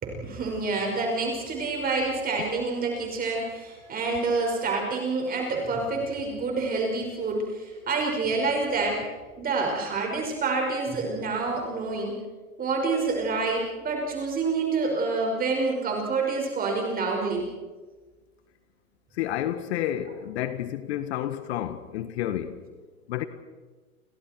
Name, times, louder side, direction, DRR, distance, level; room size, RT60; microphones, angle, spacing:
voice 1, 0.0-9.1 9.4-12.2 12.6-17.5, right 3 dB, 20° right, 5.5 m, -27 dB
voice 2, 19.1-22.6 23.1-23.3, left 12 dB, 50° left, 1.7 m, -30 dB
29.5 x 29.0 x 4.6 m
hypercardioid pair, 115°, 43 cm